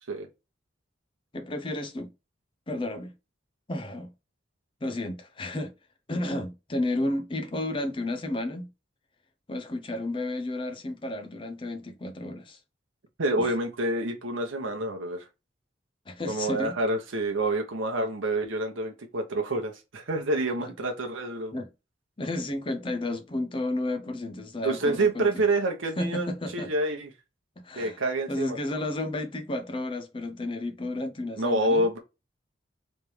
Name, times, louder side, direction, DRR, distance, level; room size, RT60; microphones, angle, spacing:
voice 1, 1.3-2.1 2.7-3.1 3.7-4.1 4.8-5.7 6.1-8.7 9.5-12.6 13.4-13.5 16.1-16.8 20.6-20.7 21.5-21.7 22.2-25.4 26.0-26.7 27.6-28.0 28.3-31.8, left 1 dB, 25° left, 0.5 m, -32 dB
voice 2, 13.2-15.3 16.3-21.6 24.6-27.1 27.8-28.6 31.4-32.0, right 2 dB, 85° right, 0.9 m, -28 dB
3.4 x 3.1 x 3.2 m
head